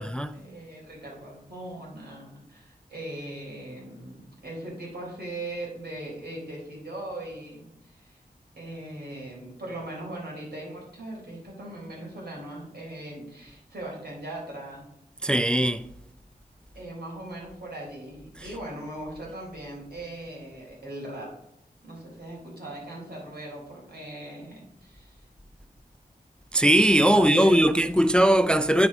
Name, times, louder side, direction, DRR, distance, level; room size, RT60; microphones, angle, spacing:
voice 1, 0.0-8.2 8.6-14.9 16.8-21.4 21.8-25.3 27.1-27.8, right 1 dB, 75° right, 3.8 m, -39 dB
voice 2, 15.2-15.8 26.5-28.9, right 1 dB, 5° left, 0.3 m, -20 dB
9.5 x 4.8 x 4.8 m
wide cardioid pair, 70°, 17 cm